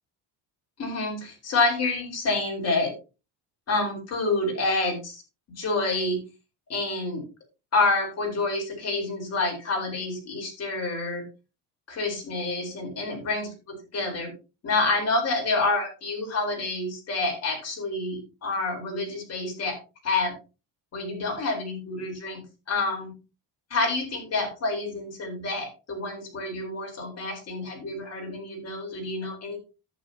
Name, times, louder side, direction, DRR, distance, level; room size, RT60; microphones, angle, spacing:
voice 1, 0.8-2.9 3.7-5.2 5.5-6.2 6.7-7.2 7.7-11.2 11.9-14.3 14.6-19.8 20.0-20.3 20.9-22.4 22.7-23.1 23.7-29.6, left 3 dB, 40° left, 0 dB, 4.3 m, -28 dB
11.5 x 9.1 x 2.9 m, 0.30 s
cardioid pair, 175°, 41 cm